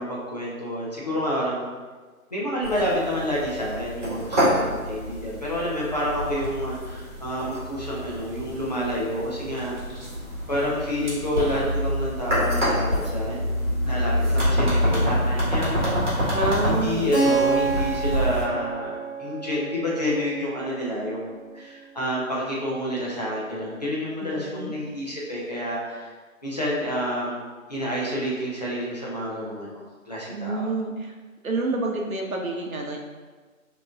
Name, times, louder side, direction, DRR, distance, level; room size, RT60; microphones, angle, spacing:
voice 1, 0.0-1.7 2.3-9.7 10.5-13.5 13.8-16.4 16.6-26.1 26.4-27.4 27.7-30.7, equal, 30° left, -6 dB, 0.7 m, -29 dB
sound 1, 2.6-18.4, equal, 35° right, 1.5 m, -27 dB
voice 2, 16.3-17.2 24.2-24.8 30.3-31.1 31.4-33.0, right 2 dB, 70° right, 1 dB, 0.9 m, -28 dB
Keyboard (musical), 17.1-21.7, right 4 dB, 50° left, 1.2 m, -28 dB
5.9 x 3.0 x 2.4 m, 1.4 s
figure-of-eight pair, 155°, 43 cm